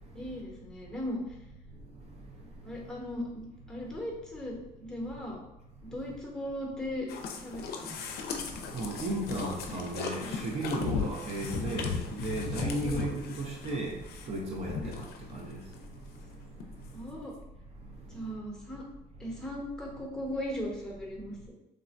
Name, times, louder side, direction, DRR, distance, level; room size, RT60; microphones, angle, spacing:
voice 1, 0.1-1.4 2.6-5.4 5.9-7.1 7.4-8.0 12.6-13.2 14.8-14.9 16.9-17.3 18.1-18.8 19.2-21.5, left 1 dB, 5° left, 0.7 m, -38 dB
voice 2, 1.7-2.7 8.6-17.2 17.9-18.2, right 2 dB, 40° right, 0.5 m, -36 dB
sound 1, 7.1-15.4 15.7-15.8 16.3-16.4 16.6-16.7, left 6 dB, 70° left, 0.4 m, -36 dB
3.2 x 2.1 x 2.5 m
cardioid pair, 110°, 17 cm